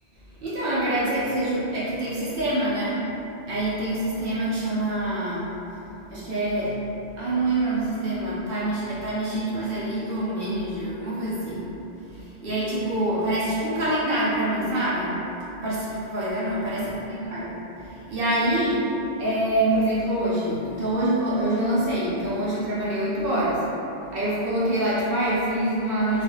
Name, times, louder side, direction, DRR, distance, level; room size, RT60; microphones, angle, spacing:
voice 1, 0.4-3.0 3.5-5.5 6.1-6.8 7.2-11.6 12.0-15.2 15.6-17.5 17.8-18.9 19.2-23.6 24.1-26.2, right 1 dB, 60° right, -8 dB, 0.7 m, -25 dB
2.4 x 2.4 x 3.0 m, 2.9 s
omnidirectional pair, 1.2 m